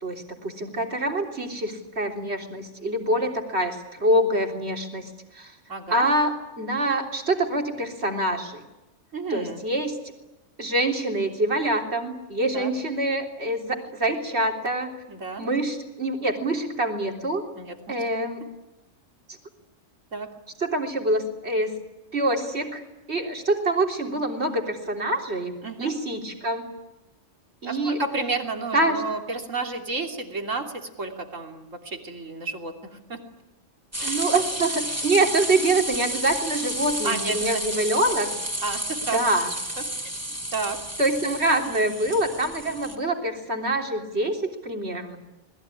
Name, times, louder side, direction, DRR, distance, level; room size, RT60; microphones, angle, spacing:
voice 1, 0.0-5.5 5.9-8.6 9.3-10.0 10.6-14.9 15.4-17.4 17.9-18.4 20.6-21.7 22.1-22.8 23.1-25.5 25.8-26.7 27.6-28.0 28.7-29.0 34.0-38.3 39.1-39.5 41.0-45.2, right 1 dB, 60° right, 3 dB, 3.8 m, -25 dB
voice 2, 5.7-6.0 9.1-9.6 12.5-12.7 15.1-15.5 17.6-18.0 20.1-20.3 25.6-25.9 27.6-33.2 34.0-34.2 37.0-37.6 38.6-39.2 40.0-40.1 40.5-40.8, right 3 dB, 90° right, 4 dB, 3.4 m, -31 dB
sound 1, 33.9-43.0, right 1 dB, 10° right, 3.3 m, -31 dB
29.0 x 21.0 x 10.0 m, 1.0 s
omnidirectional pair, 1.3 m